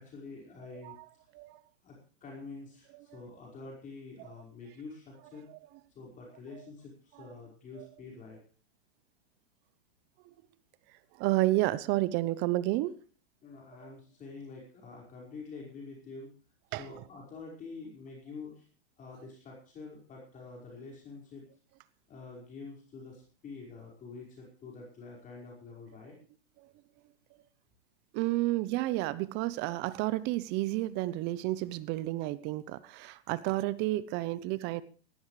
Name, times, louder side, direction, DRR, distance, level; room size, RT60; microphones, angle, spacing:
voice 1, 0.0-1.3 1.8-5.5 6.0-8.4 13.4-16.3 16.8-18.7 19.0-21.4 22.1-26.2, left 4 dB, 25° left, -2 dB, 5.1 m, -47 dB
voice 2, 11.2-12.9 13.8-13.9 16.7-16.8 28.1-34.8, right 17 dB, 30° right, 18 dB, 0.8 m, -30 dB
18.5 x 14.5 x 3.3 m, 0.39 s
hypercardioid pair, 125°, 33 cm